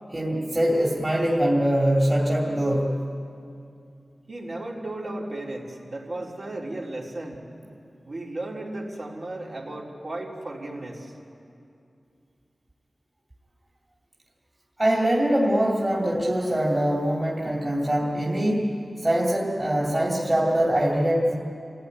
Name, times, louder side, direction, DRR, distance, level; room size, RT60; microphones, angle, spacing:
voice 1, 0.1-2.9 14.8-18.8 19.0-21.4, right 1 dB, 25° right, -3 dB, 2.6 m, -23 dB
voice 2, 4.3-7.4 8.0-11.1, right 1 dB, 55° right, -3 dB, 3.9 m, -35 dB
27.0 x 16.5 x 9.8 m, 2.6 s
wide cardioid pair, 95°, 0 cm